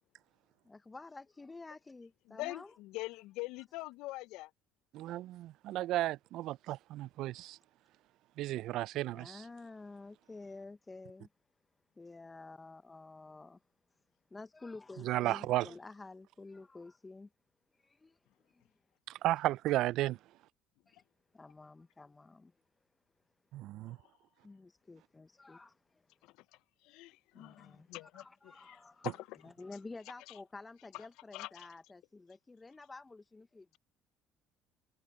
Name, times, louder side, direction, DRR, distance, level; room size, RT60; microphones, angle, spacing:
voice 1, 0.6-2.7 9.1-11.3 12.0-13.6 14.3-17.3 17.7-18.2 18.4-18.6 20.9-21.0 21.3-22.5 24.4-26.1 27.3-29.1 29.4-33.8, left 3 dB, 20° left, 1.1 m, -51 dB
voice 2, 2.3-4.5 20.9-21.0 23.9-24.0 26.2-26.4 26.8-28.2 28.6-29.5 30.3-30.4 30.9-31.1 31.3-31.7, left 20 dB, 70° left, 0.9 m, -44 dB
voice 3, 4.9-7.6 8.4-9.4 15.0-15.7 19.1-20.2 23.5-24.0, right 15 dB, 65° right, 0.6 m, -34 dB
hypercardioid pair, 65°, 0 cm